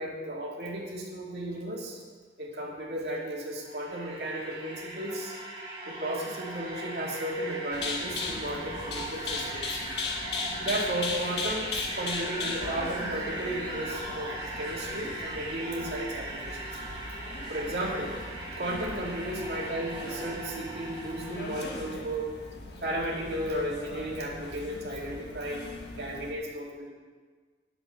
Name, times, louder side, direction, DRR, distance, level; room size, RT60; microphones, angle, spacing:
voice 1, 0.0-2.0 2.4-5.4 5.9-9.8 10.6-16.8 17.5-18.1 18.5-22.3 22.8-25.6 26.0-26.9, right 1 dB, 65° right, -3 dB, 2.3 m, -34 dB
sound 1, 3.4-22.1, right 1 dB, 30° right, 2.0 m, -39 dB
sound 2, 7.7-26.3, left 3 dB, 70° left, 1.3 m, -38 dB
9.6 x 7.8 x 6.5 m, 1.5 s
head